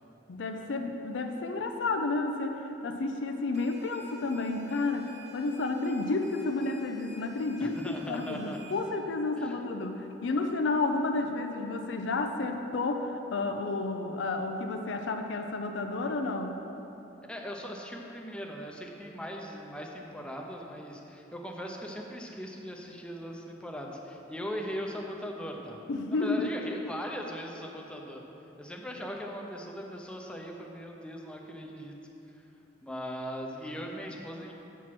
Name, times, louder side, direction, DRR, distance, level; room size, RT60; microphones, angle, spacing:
voice 1, 0.3-16.6 25.9-26.5, left 3 dB, 70° left, 5 dB, 0.5 m, -31 dB
sound 1, 3.5-8.9, equal, 40° right, 0.8 m, -52 dB
voice 2, 7.6-8.7 9.4-9.6 17.3-25.8 26.1-28.2 28.6-31.9 32.3-32.4 32.8-34.5, equal, 5° left, 0 dB, 0.6 m, -39 dB
7.3 x 4.6 x 5.9 m, 3.0 s
head